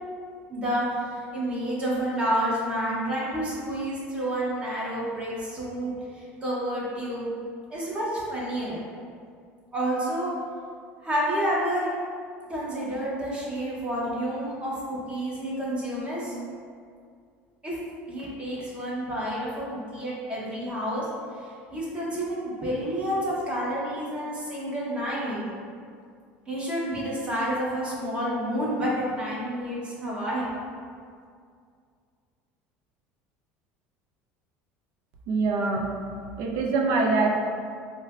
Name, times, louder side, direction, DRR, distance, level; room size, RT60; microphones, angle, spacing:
voice 1, 0.5-0.8 1.1-5.9 6.2-7.3 7.7-8.8 9.7-10.3 11.0-11.9 12.5-16.3 17.6-17.7 18.1-21.0 21.7-25.5 26.5-30.5, equal, 20° right, -6 dB, 0.9 m, -29 dB
voice 2, 35.3-35.9 36.4-37.4, right 3 dB, 70° right, 1 dB, 0.5 m, -24 dB
4.1 x 2.2 x 2.4 m, 2.2 s
supercardioid pair, 120°, 5 cm